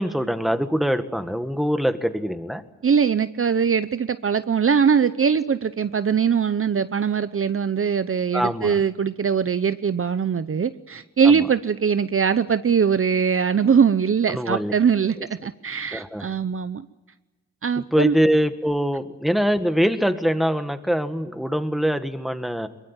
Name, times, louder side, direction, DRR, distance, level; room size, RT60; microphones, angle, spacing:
voice 1, 0.0-2.6 8.3-8.8 11.2-11.4 14.3-14.7 15.9-16.3 17.8-22.7, equal, ahead, 9 dB, 1.8 m, -23 dB
voice 2, 2.8-16.9 17.6-18.1, right 6 dB, 45° right, 12 dB, 0.8 m, -21 dB
23.0 x 22.5 x 9.1 m, 1.2 s
cardioid pair, 85°, 30 cm